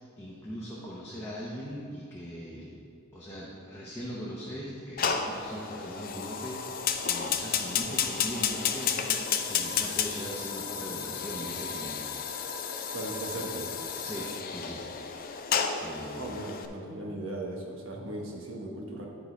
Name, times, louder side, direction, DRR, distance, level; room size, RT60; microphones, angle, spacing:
voice 1, 0.0-2.8 3.1-12.0 12.3-12.5 14.0-14.8 15.8-16.3, equal, 10° left, -7 dB, 0.9 m, -40 dB
Fire, 5.0-16.7, left 7 dB, 45° left, 0.4 m, -32 dB
voice 2, 12.9-13.7 16.1-19.1, right 1 dB, 70° right, -1 dB, 1.2 m, -37 dB
10.5 x 4.0 x 4.6 m, 2.4 s
head